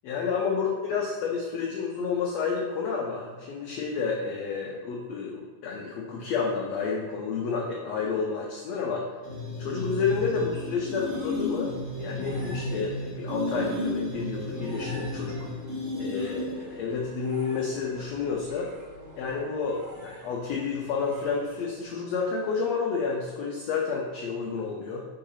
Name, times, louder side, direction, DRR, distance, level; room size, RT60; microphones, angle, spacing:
voice 1, 0.0-9.1 9.6-15.5 16.0-18.7 19.2-25.0, left 5 dB, 80° left, -2 dB, 1.5 m, -30 dB
sound 1, 9.2-16.7, left 1 dB, 55° right, 0.7 m, -33 dB
sound 2, 10.7-21.8, right 1 dB, 85° right, 3.3 m, -51 dB
sound 3, 14.5-19.8, equal, 25° left, 1.6 m, -48 dB
5.7 x 3.8 x 5.6 m, 1.5 s
omnidirectional pair, 3.8 m